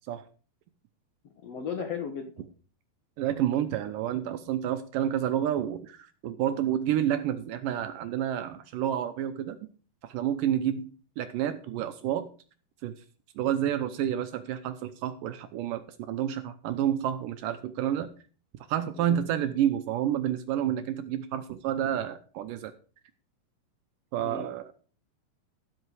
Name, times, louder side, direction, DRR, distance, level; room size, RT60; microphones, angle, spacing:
voice 1, 1.4-2.4 19.0-19.2 24.2-24.5, left 6 dB, 75° left, 5 dB, 1.5 m, -36 dB
voice 2, 3.2-9.6 10.0-12.3 12.8-12.9 13.4-18.1 18.7-22.7 24.1-24.7, right 10 dB, 80° right, 11 dB, 2.0 m, -29 dB
13.0 x 7.8 x 4.8 m, 0.37 s
omnidirectional pair, 4.7 m